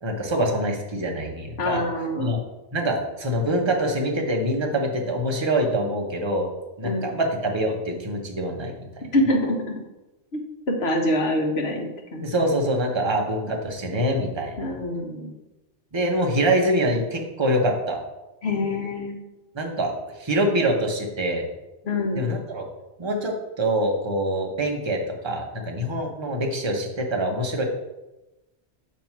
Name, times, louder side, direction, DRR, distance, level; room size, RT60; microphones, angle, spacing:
voice 1, 0.0-1.8 2.2-2.4 2.7-6.5 6.8-8.7 12.2-14.7 15.9-18.0 19.5-19.9 20.2-21.4 22.2-22.7 23.0-27.6, right 1 dB, 25° right, 1 dB, 0.9 m, -25 dB
voice 2, 1.6-2.3 6.8-7.1 9.1-9.8 10.3-10.4 10.8-12.3 14.6-15.3 18.4-19.2 21.9-22.2, left 1 dB, 65° left, 2 dB, 1.3 m, -25 dB
7.2 x 2.9 x 5.9 m, 1.0 s
omnidirectional pair, 1.2 m